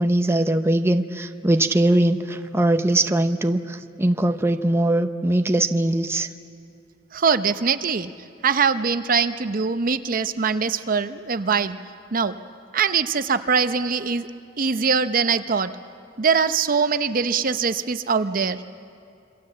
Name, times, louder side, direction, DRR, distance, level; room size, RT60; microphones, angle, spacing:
voice 1, 0.0-6.3, right 1 dB, 15° right, 7 dB, 0.7 m, -21 dB
voice 2, 7.1-8.1 8.4-11.8 12.1-12.4 12.7-14.3 14.6-15.7 16.2-18.6, right 5 dB, 50° right, 10 dB, 0.7 m, -22 dB
26.5 x 24.5 x 7.6 m, 2.4 s
head